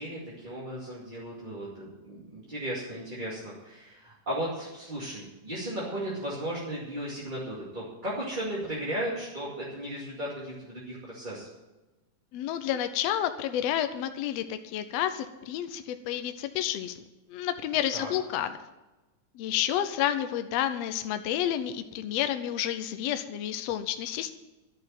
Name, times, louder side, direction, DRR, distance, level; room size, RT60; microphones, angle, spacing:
voice 1, 0.0-11.5 17.9-18.1, right 1 dB, 15° right, -7 dB, 2.1 m, -35 dB
voice 2, 12.3-16.9 17.3-18.6 19.3-24.3, left 11 dB, 75° left, 9 dB, 1.5 m, -30 dB
11.5 x 6.9 x 9.3 m, 1.1 s
omnidirectional pair, 3.6 m